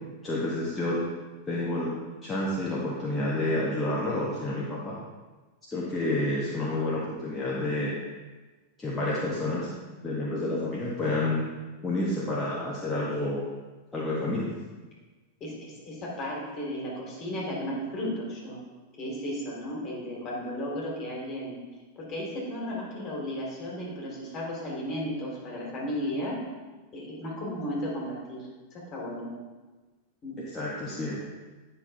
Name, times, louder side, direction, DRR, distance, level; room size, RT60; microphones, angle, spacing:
voice 1, 0.2-1.0 1.5-1.9 2.2-5.0 5.7-7.9 8.8-9.7 10.0-11.4 11.8-13.4 13.9-14.5 30.5-31.3, left 1 dB, 15° left, -6 dB, 1.0 m, -29 dB
voice 2, 15.4-18.6 19.0-21.6 22.0-26.4 26.9-28.5 28.7-29.3 30.2-30.4, equal, 35° left, -2 dB, 2.2 m, -34 dB
9.7 x 5.5 x 2.7 m, 1.3 s
figure-of-eight pair, 90°, 0 cm